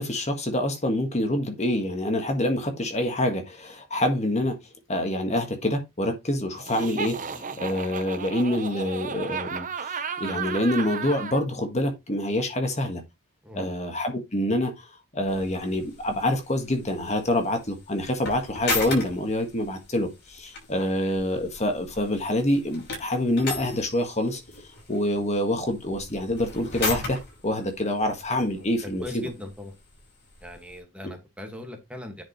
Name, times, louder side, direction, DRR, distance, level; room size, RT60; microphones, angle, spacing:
voice 1, 0.0-4.6 4.9-13.0 13.5-14.9 15.1-24.4 24.9-27.2 27.4-29.2, left 1 dB, 30° left, 1.6 m, -26 dB
Laughter, 6.6-11.4, right 6 dB, 35° right, 0.8 m, -34 dB
sound 1, 15.3-30.8, left 3 dB, 50° left, 5.6 m, -38 dB
voice 2, 28.8-29.7 30.4-32.2, left 1 dB, 5° right, 1.8 m, -39 dB
9.9 x 5.1 x 3.1 m
head